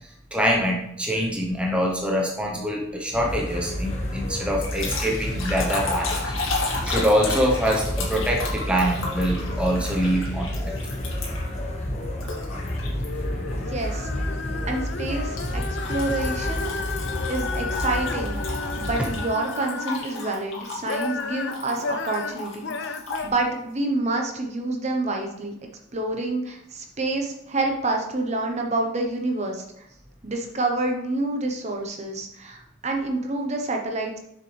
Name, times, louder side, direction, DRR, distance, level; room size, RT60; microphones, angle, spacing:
voice 1, 0.3-6.4 6.8-10.7, equal, 5° right, -1 dB, 0.9 m, -24 dB
sound 1, 3.1-19.1, equal, 35° left, 1.0 m, -30 dB
sound 2, 4.6-11.6 12.2-13.1 13.5-13.8 15.4-23.3, left 3 dB, 75° left, 2.1 m, -34 dB
sound 3, 12.8-20.3 20.7-23.3, left 4 dB, 55° left, 0.5 m, -33 dB
voice 2, 13.5-14.1 14.7-16.7 17.3-22.9 23.2-25.5 25.9-29.9 30.2-34.2, right 2 dB, 35° right, 2 dB, 0.9 m, -28 dB
6.7 x 6.6 x 3.3 m, 0.77 s
head